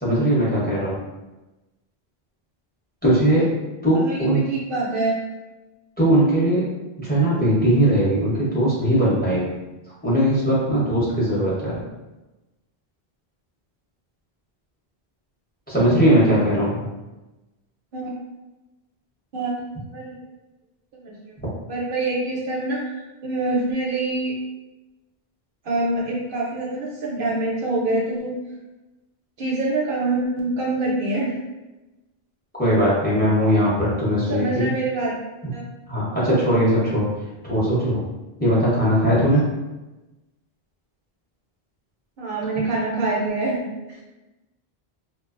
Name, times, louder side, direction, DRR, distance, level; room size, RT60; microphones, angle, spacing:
voice 1, 0.0-1.0 3.0-3.5 3.8-4.4 6.0-6.6 7.0-9.5 10.0-11.8 15.7-16.8 32.6-34.7 35.9-37.1 37.4-38.0 38.4-39.4, right 1 dB, 10° left, -8 dB, 0.6 m, -19 dB
voice 2, 3.9-5.2 17.9-18.1 19.3-20.1 21.0-21.4 21.7-22.8 23.2-24.3 25.6-28.4 29.4-31.4 34.2-35.2 35.5-35.7 42.2-44.1, right 2 dB, 65° right, -3 dB, 0.7 m, -25 dB
2.5 x 2.1 x 2.4 m, 1.1 s
omnidirectional pair, 1.0 m